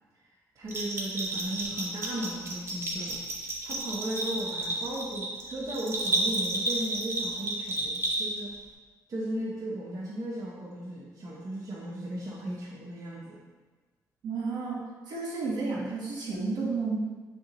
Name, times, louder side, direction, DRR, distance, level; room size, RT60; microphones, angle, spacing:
voice 1, 0.6-3.2 3.6-8.6 9.1-13.4, right 1 dB, 50° right, -5 dB, 1.1 m, -36 dB
Bell, 0.7-8.6, right 1 dB, 35° right, 1.4 m, -32 dB
voice 2, 14.2-17.0, right 4 dB, 75° right, -3 dB, 1.6 m, -32 dB
8.1 x 3.7 x 3.1 m, 1.3 s
cardioid pair, 80°, 7 cm